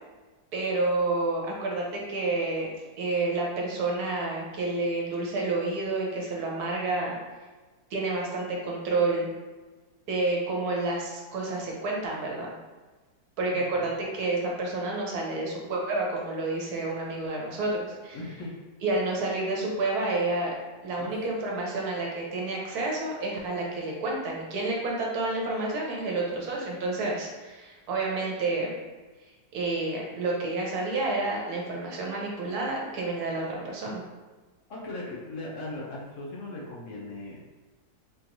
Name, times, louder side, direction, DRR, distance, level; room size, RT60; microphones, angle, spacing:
voice 1, 0.5-2.7 3.0-7.1 7.9-9.3 10.1-12.5 13.4-18.2 18.8-20.5 20.8-28.7 29.5-34.0, right 2 dB, 75° right, -2 dB, 1.3 m, -29 dB
voice 2, 13.5-13.9 18.1-18.5 21.0-21.2 34.7-37.4, left 2 dB, 65° left, -3 dB, 0.9 m, -38 dB
4.4 x 3.1 x 2.6 m, 1.3 s
omnidirectional pair, 1.7 m